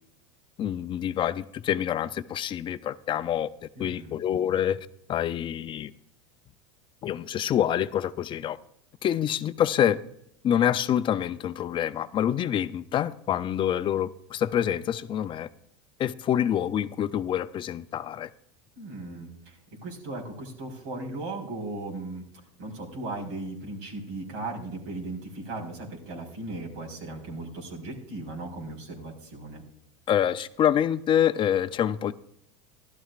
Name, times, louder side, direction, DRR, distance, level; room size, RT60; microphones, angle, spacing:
voice 1, 0.6-3.5 3.8-4.8 5.1-5.9 7.0-8.6 9.0-10.0 10.4-15.5 16.0-18.3 30.1-32.1, left 10 dB, 30° left, 0.5 m, -26 dB
voice 2, 3.8-4.2 18.8-22.2 22.6-29.6, right 2 dB, 70° right, 4.2 m, -37 dB
16.0 x 12.5 x 2.5 m
supercardioid pair, 115°, 16 cm